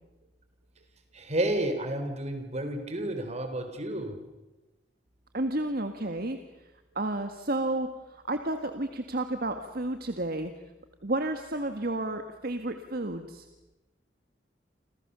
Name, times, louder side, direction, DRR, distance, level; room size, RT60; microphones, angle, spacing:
voice 1, 1.1-4.2, right 1 dB, 40° right, 7 dB, 4.0 m, -31 dB
voice 2, 5.3-6.4 6.9-10.5 11.0-13.5, right 2 dB, 55° right, 7 dB, 1.7 m, -31 dB
29.5 x 26.0 x 6.9 m, 1.0 s
head